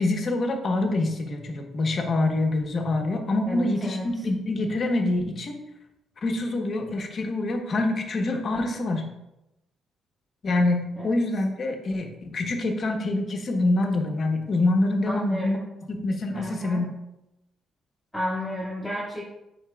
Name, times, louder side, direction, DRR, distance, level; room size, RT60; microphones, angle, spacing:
voice 1, 0.0-5.5 6.2-9.1 10.4-16.9, left 2 dB, 50° left, 3 dB, 1.1 m, -26 dB
voice 2, 3.5-4.0 15.1-15.5 16.3-16.8 18.1-19.2, equal, ahead, -9 dB, 2.1 m, -31 dB
9.3 x 4.3 x 2.3 m, 0.90 s
cardioid pair, 90°, 0 cm